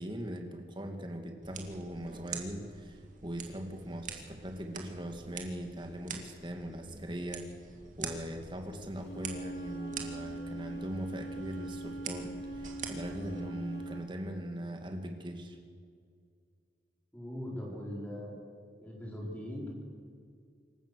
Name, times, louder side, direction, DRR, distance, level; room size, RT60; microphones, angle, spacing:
voice 1, 0.0-7.5 8.0-15.6, equal, 25° right, 4 dB, 2.3 m, -40 dB
sound 1, 1.4-13.4, right 6 dB, 45° right, 2.4 m, -46 dB
Wind instrument woodwind instrument, 9.0-14.0, right 2 dB, 75° left, 3.0 m, -42 dB
voice 2, 17.1-18.3 18.8-19.7, left 1 dB, 10° left, -3 dB, 4.8 m, -40 dB
26.5 x 15.0 x 6.9 m, 2.1 s
head